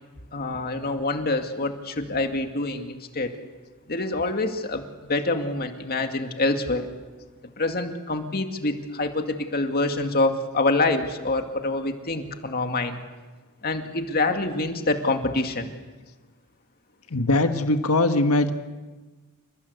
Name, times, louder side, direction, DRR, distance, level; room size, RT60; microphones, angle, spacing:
voice 1, 0.3-3.3 3.9-6.9 7.6-13.0 13.6-15.7, left 2 dB, 45° left, 5 dB, 2.3 m, -26 dB
voice 2, 17.1-18.5, left 2 dB, 85° left, 7 dB, 1.6 m, -21 dB
29.5 x 20.0 x 8.2 m, 1.3 s
head